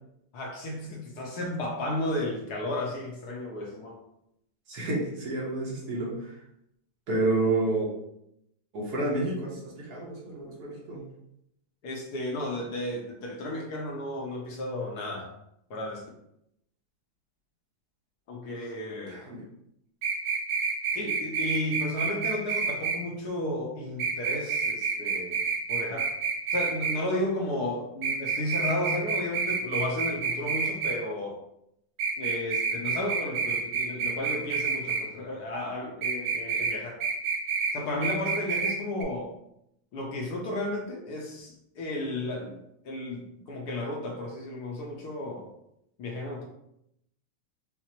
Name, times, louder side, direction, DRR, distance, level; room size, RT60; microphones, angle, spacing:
voice 1, 0.3-4.0 11.8-15.3 15.7-16.0 18.3-19.2 20.9-25.4 25.7-26.1 26.5-31.4 32.2-37.0 37.7-39.3 39.9-42.6 42.8-45.5 46.0-46.4, left 1 dB, 70° left, 0 dB, 1.1 m, -33 dB
voice 2, 4.7-6.4 7.1-7.9 8.7-11.0 19.1-19.4, right 2 dB, 60° right, -4 dB, 1.4 m, -29 dB
sound 1, 20.0-23.0 24.0-27.0 28.0-31.0 32.0-35.0 36.0-36.8 37.0-37.8 38.0-38.8 39.0-39.1, right 5 dB, 90° right, 1.4 m, -28 dB
5.6 x 2.0 x 2.9 m, 0.78 s
omnidirectional pair, 2.0 m